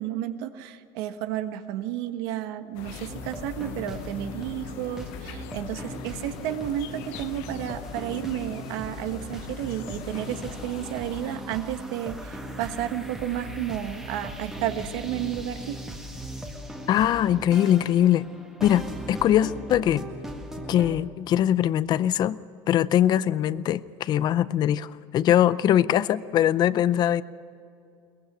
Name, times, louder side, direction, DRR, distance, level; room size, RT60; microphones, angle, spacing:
voice 1, 0.0-15.8, right 11 dB, 75° right, 9 dB, 1.3 m, -32 dB
sound 1, 2.7-11.4, left 13 dB, 65° left, 0.8 m, -43 dB
sound 2, 2.9-21.0, equal, 5° right, 1.7 m, -38 dB
voice 2, 16.9-18.3 18.6-20.0 20.7-22.4 22.7-27.2, left 11 dB, 35° left, 17 dB, 0.5 m, -22 dB
22.0 x 21.5 x 6.2 m, 2.5 s
cardioid pair, 160°, 12 cm